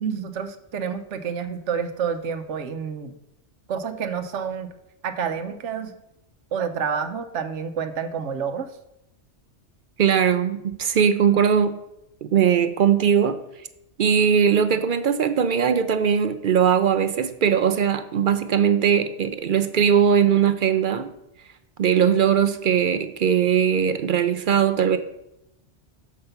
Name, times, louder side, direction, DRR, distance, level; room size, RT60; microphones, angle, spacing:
voice 1, 0.0-3.1 3.7-4.7 5.0-5.9 6.5-8.7, right 7 dB, 80° right, 9 dB, 1.0 m, -28 dB
voice 2, 10.0-11.8 12.2-13.4 14.0-21.1 21.8-25.0, right 8 dB, 60° right, 11 dB, 0.6 m, -20 dB
6.7 x 4.8 x 5.6 m, 0.86 s
omnidirectional pair, 1.2 m